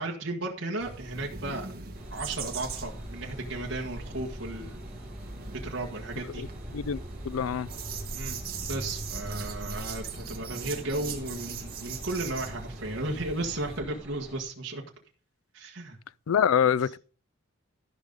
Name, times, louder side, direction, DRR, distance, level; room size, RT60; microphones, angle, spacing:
voice 1, 0.0-1.7 2.1-4.8 5.6-6.4 8.1-8.4 8.7-14.8 15.5-16.0, right 2 dB, 65° right, 1.6 m, -34 dB
sound 1, 0.8-13.8, right 3 dB, 45° right, 1.9 m, -39 dB
sound 2, 1.9-14.4, equal, 5° right, 1.9 m, -46 dB
voice 2, 6.7-7.7 16.3-17.0, left 8 dB, 80° left, 0.4 m, -25 dB
13.5 x 5.4 x 5.1 m
head